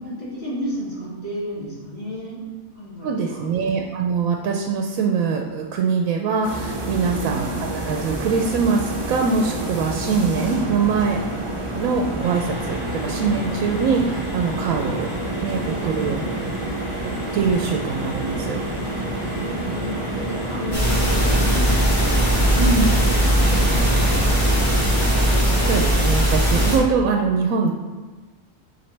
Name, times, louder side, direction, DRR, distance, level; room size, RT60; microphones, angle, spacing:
voice 1, 0.0-2.4 2.7-3.4 6.8-7.2 19.1-21.9 23.2-24.9, equal, 45° left, -8 dB, 2.4 m, -33 dB
voice 2, 3.0-11.2 11.7-15.1 15.4-16.3 17.0-18.6 22.6-22.9 25.6-27.7, right 5 dB, 85° right, 2 dB, 1.0 m, -23 dB
sound 1, 6.4-25.8, right 1 dB, 30° right, 0.7 m, -29 dB
sound 2, 12.2-24.1, right 1 dB, 70° left, 1.7 m, -35 dB
sound 3, 20.7-26.8, equal, 15° left, 2.1 m, -19 dB
6.9 x 4.5 x 3.3 m, 1.3 s
omnidirectional pair, 1.4 m